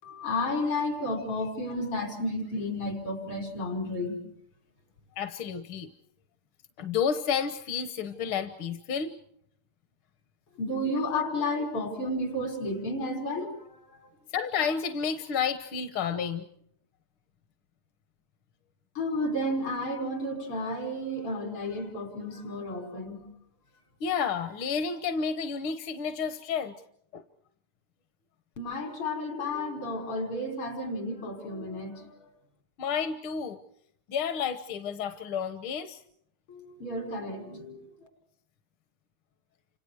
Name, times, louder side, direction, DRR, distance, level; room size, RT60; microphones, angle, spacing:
voice 1, 0.0-4.2 10.5-14.1 18.9-23.3 28.6-32.3 36.5-37.9, left 1 dB, 90° left, 4 dB, 6.1 m, -32 dB
voice 2, 5.2-5.9 6.8-9.2 14.3-16.5 24.0-26.8 27.1-27.2 32.8-33.6 34.1-36.0, left 6 dB, 75° left, 9 dB, 1.9 m, -30 dB
30.0 x 27.0 x 4.7 m, 0.70 s
omnidirectional pair, 2.4 m